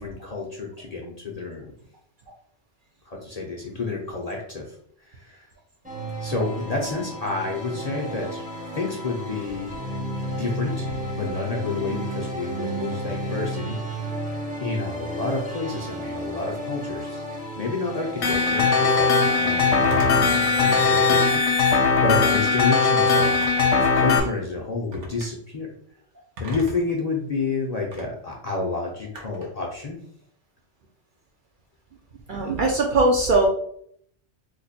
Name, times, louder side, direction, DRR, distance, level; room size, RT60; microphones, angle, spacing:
voice 1, 0.0-1.7 3.0-4.8 5.0-5.5 6.2-8.4 8.7-9.7 10.3-10.9 11.1-14.0 14.6-17.2 17.5-20.2 20.6-23.5 23.8-25.7 26.4-30.0, left 3 dB, 45° left, -2 dB, 0.5 m, -30 dB
sound 1, 5.8-21.2, right 1 dB, 10° right, 0.5 m, -33 dB
sound 2, 18.2-24.2, left 4 dB, 75° left, 0.9 m, -19 dB
Telephone, 18.2-18.6 19.9-20.4 21.6-22.0 23.2-23.9 24.9-25.3 26.4-26.9 27.9-28.1 29.2-29.6, left 1 dB, 80° right, 1.2 m, -36 dB
voice 2, 32.3-33.5, right 2 dB, 55° right, 1 dB, 0.6 m, -20 dB
3.0 x 2.2 x 4.1 m, 0.66 s
omnidirectional pair, 1.2 m